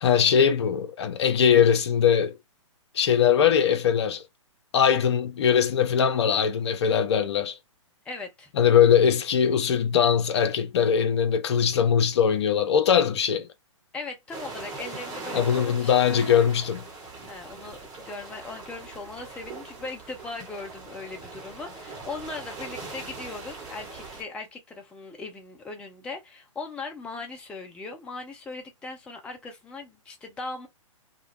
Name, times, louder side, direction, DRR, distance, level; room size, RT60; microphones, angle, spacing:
voice 1, 0.0-2.4 2.9-4.2 4.7-7.6 8.6-13.5 15.3-16.8, left 8 dB, 55° left, 0.6 m, -21 dB
voice 2, 8.1-8.5 13.9-16.0 17.3-30.7, left 3 dB, 5° left, 0.4 m, -39 dB
sound 1, 14.3-24.2, right 3 dB, 20° right, 1.1 m, -40 dB
2.4 x 2.1 x 3.3 m
figure-of-eight pair, 120°, 17 cm